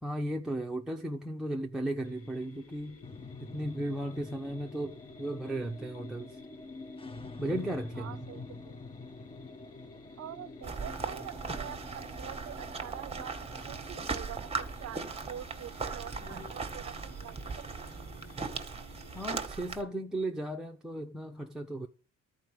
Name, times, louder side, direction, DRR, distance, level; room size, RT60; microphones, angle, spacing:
voice 1, 0.0-3.0 3.4-6.4 7.4-8.3 19.1-21.9, right 1 dB, ahead, 1.1 m, -35 dB
sound 1, 2.0-19.3, left 4 dB, 50° left, 1.7 m, -56 dB
sound 2, 3.0-17.7, left 3 dB, 20° left, 0.8 m, -48 dB
voice 2, 7.9-8.8 10.2-13.4 13.6-17.5, right 11 dB, 55° right, 0.7 m, -45 dB
sound 3, 10.6-19.8, right 4 dB, 20° right, 1.9 m, -38 dB
13.5 x 4.9 x 8.0 m
cardioid pair, 90°, 30 cm